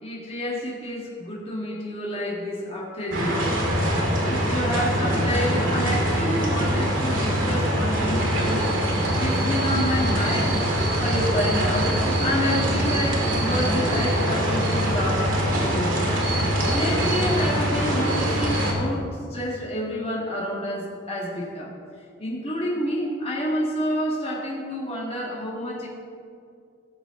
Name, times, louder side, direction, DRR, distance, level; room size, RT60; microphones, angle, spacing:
voice 1, 0.0-3.6 4.3-10.7 11.0-15.3 15.6-16.1 16.4-19.0 19.3-21.7 22.2-25.9, equal, 30° left, -4 dB, 1.9 m, -29 dB
sound 1, 3.1-18.7, equal, 75° right, 2.3 m, -23 dB
16.5 x 6.8 x 3.8 m, 2.3 s
head